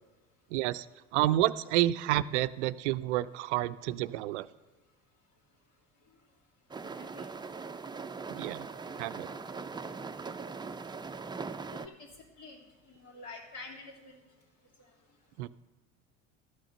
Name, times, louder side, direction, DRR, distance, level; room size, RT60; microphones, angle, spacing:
voice 1, 0.5-0.9 1.1-4.5 8.3-8.7 9.0-9.3 15.4-15.5, right 15 dB, 70° right, 15 dB, 0.5 m, -29 dB
sound 1, 6.7-11.9, right 4 dB, 10° right, 0.6 m, -40 dB
voice 2, 8.9-9.4 11.7-12.1 12.4-12.6 12.9-14.2, left 3 dB, 55° left, -1 dB, 3.3 m, -48 dB
12.5 x 6.2 x 6.7 m, 1.2 s
hypercardioid pair, 65°, 36 cm